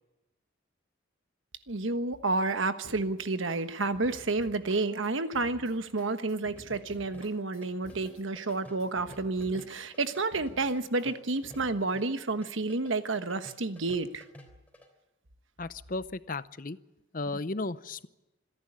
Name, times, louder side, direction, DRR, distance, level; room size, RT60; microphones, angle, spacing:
voice 1, 1.7-14.2, right 3 dB, 75° right, 10 dB, 1.3 m, -30 dB
sound 1, 2.8-11.8, left 1 dB, 85° left, 3.2 m, -52 dB
sound 2, 6.6-14.9, left 1 dB, 10° left, 3.5 m, -52 dB
voice 2, 15.6-16.8 17.1-18.1, left 3 dB, 40° left, 15 dB, 0.7 m, -35 dB
26.5 x 11.0 x 9.9 m, 1.0 s
head